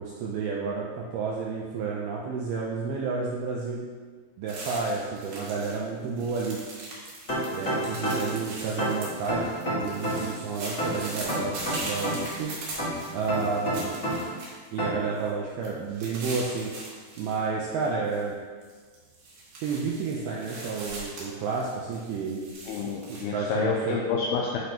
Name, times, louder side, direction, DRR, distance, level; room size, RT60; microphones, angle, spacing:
voice 1, 0.0-3.9 4.4-6.6 7.5-12.5 13.1-14.0 14.7-16.7 17.2-18.4 19.6-22.5 23.1-24.0, right 5 dB, 80° right, -4 dB, 2.2 m, -31 dB
sound 1, 4.5-5.8 6.0-14.8 15.2-15.3 15.6-17.4 17.7-18.2 18.6-23.2, right 2 dB, 55° right, 3.0 m, -40 dB
sound 2, 7.3-8.4 8.8-10.4 10.8-12.4 12.8-14.4 14.8-15.1, equal, 40° left, 1.1 m, -29 dB
voice 2, 22.7-24.6, left 5 dB, 90° left, -1 dB, 2.3 m, -28 dB
11.5 x 5.2 x 3.0 m, 1.5 s
omnidirectional pair, 5.3 m